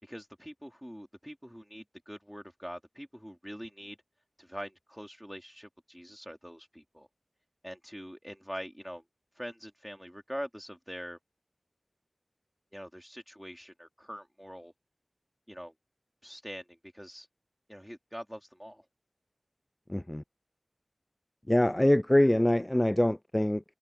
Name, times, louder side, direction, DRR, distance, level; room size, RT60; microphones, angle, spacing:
voice 1, 0.0-4.0 4.4-7.1 7.6-9.0 9.3-11.2 12.7-14.7 15.5-15.7 16.2-16.6 16.9-17.3 17.7-18.8, equal, ahead, 2.6 m, -44 dB
voice 2, 19.9-20.2 21.5-23.6, left 1 dB, 20° left, 0.3 m, -24 dB
wide cardioid pair, 40°, 0 cm